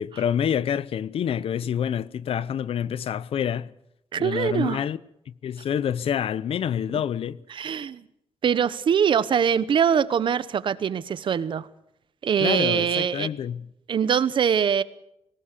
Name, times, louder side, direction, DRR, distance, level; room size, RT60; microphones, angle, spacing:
voice 1, 0.0-3.7 4.2-5.0 5.3-7.4 12.4-13.7, left 9 dB, 65° left, 0.8 m, -27 dB
voice 2, 4.1-4.8 7.5-8.0 8.4-11.7 12.2-13.3 13.9-14.8, right 8 dB, 50° right, 0.9 m, -23 dB
22.5 x 19.0 x 6.7 m
wide cardioid pair, 170°, 10 cm